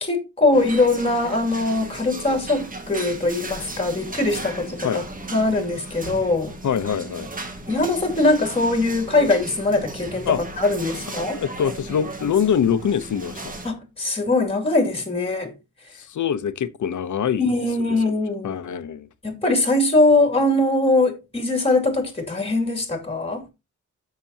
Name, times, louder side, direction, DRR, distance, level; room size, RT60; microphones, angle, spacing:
voice 1, 0.0-5.0 5.3-6.5 7.7-11.4 13.6-15.5 17.4-18.5 19.2-23.5, left 2 dB, 20° left, 2.4 m, -21 dB
sound 1, 0.5-13.7, right 2 dB, 30° right, 1.7 m, -36 dB
voice 2, 6.6-7.3 10.3-10.4 11.2-13.5 16.0-17.5 17.9-18.0 18.4-19.1, left 8 dB, 75° left, 0.9 m, -24 dB
14.5 x 6.0 x 2.8 m
wide cardioid pair, 175°, 30 cm